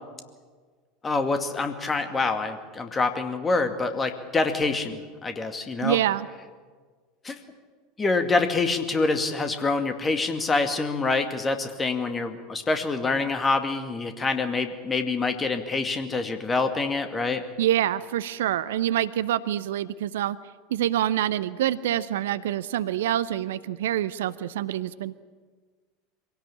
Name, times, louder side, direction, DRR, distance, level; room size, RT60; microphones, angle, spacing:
voice 1, 1.0-6.0 7.2-7.4 8.0-17.4, left 3 dB, 20° left, 7 dB, 2.3 m, -26 dB
voice 2, 5.8-6.3 17.6-20.4 20.7-25.1, right 12 dB, 65° right, 17 dB, 0.6 m, -26 dB
24.5 x 17.5 x 8.7 m, 1.5 s
figure-of-eight pair, 75°, 0 cm